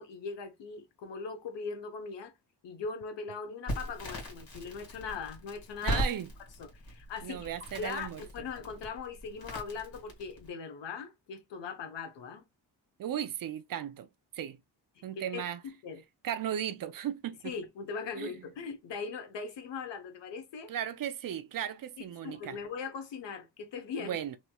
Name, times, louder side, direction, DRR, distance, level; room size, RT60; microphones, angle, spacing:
voice 1, 0.0-2.3 2.6-6.0 6.6-7.5 7.8-12.4 15.3-16.0 17.4-20.7 22.0-24.2, left 5 dB, 80° left, 1.0 m, -40 dB
Crackle, 3.7-10.5, equal, 55° left, 1.9 m, -39 dB
voice 2, 5.8-6.3 7.2-8.2 13.0-14.1 14.3-14.6 15.0-15.6 16.2-17.5 18.2-18.3 20.7-22.6 24.0-24.4, right 10 dB, 55° right, 0.5 m, -36 dB
3.1 x 3.0 x 2.2 m
cardioid pair, 105°, 42 cm